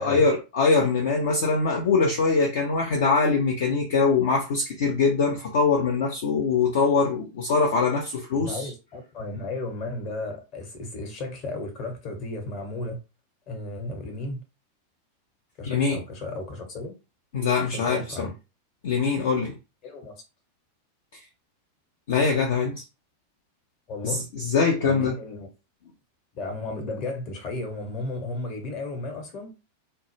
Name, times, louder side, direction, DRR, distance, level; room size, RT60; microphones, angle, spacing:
voice 1, 0.0-8.7 15.7-16.0 17.3-18.3 18.8-19.6 22.1-22.8 24.0-25.2, left 4 dB, 55° left, 0.5 m, -23 dB
voice 2, 8.3-13.0 13.5-14.4 15.6-16.9 17.7-18.3 19.8-20.1 23.9-24.2 24.8-25.5 26.3-29.5, left 2 dB, 40° left, 0.9 m, -34 dB
2.0 x 2.0 x 3.2 m
figure-of-eight pair, 90°, 0 cm